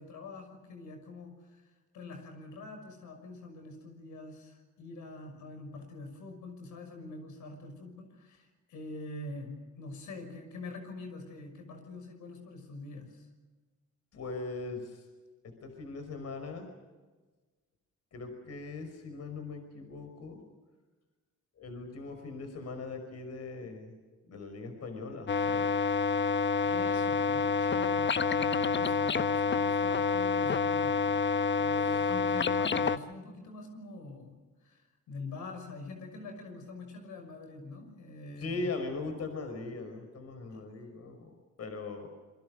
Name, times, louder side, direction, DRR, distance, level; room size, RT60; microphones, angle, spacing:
voice 1, 0.0-13.3 26.6-38.6 40.5-40.6, left 2 dB, 80° left, 5 dB, 6.2 m, -45 dB
voice 2, 14.1-15.1 15.4-16.7 18.1-20.4 21.6-24.0 24.3-25.7 31.9-32.0 38.4-42.1, left 3 dB, 55° left, 6 dB, 5.2 m, -40 dB
sound 1, 25.3-33.0, left 5 dB, 40° left, 1.2 m, -28 dB
27.0 x 23.5 x 6.5 m, 1.3 s
cardioid pair, 90°, 30 cm